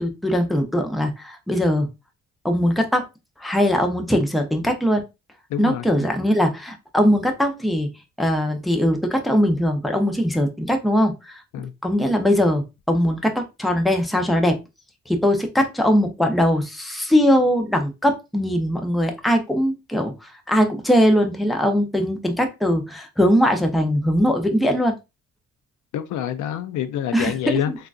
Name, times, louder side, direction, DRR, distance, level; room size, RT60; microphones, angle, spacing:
voice 1, 0.0-1.9 2.4-3.1 3.4-5.0 5.6-7.9 8.2-11.4 11.8-14.6 15.1-25.0 27.1-27.3 27.7-27.8, equal, ahead, 0.6 m, -20 dB
voice 2, 5.5-5.9 11.5-11.7 25.9-27.7, left 10 dB, 75° left, 0.5 m, -26 dB
3.7 x 2.4 x 2.3 m
cardioid pair, 90°, 30 cm